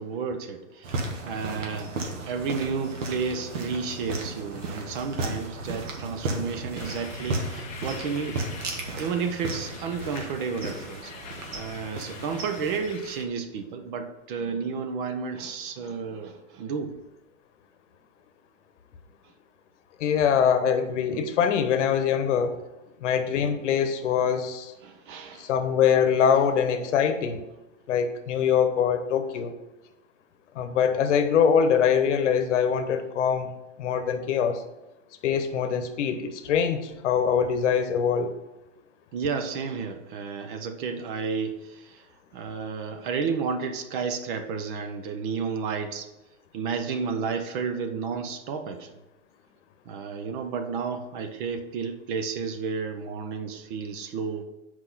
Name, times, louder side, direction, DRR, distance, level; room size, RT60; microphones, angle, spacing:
voice 1, 0.0-2.0 2.3-8.4 9.0-11.1 11.5-16.9 24.8-25.5 39.1-42.1 42.3-46.1 46.5-48.9 49.9-54.4, right 5 dB, 40° right, 8 dB, 0.7 m, -32 dB
sound 1, 0.8-12.8, right 2 dB, 65° right, 1.6 m, -34 dB
sound 2, 6.7-13.2, left 6 dB, 20° left, 0.7 m, -44 dB
voice 2, 20.0-22.6 23.0-24.7 25.4-27.4 27.9-29.5 30.5-33.5 33.8-34.6 35.2-38.3, left 7 dB, 65° left, 8 dB, 1.0 m, -23 dB
5.9 x 4.8 x 5.6 m, 0.99 s
hypercardioid pair, 145°, 39 cm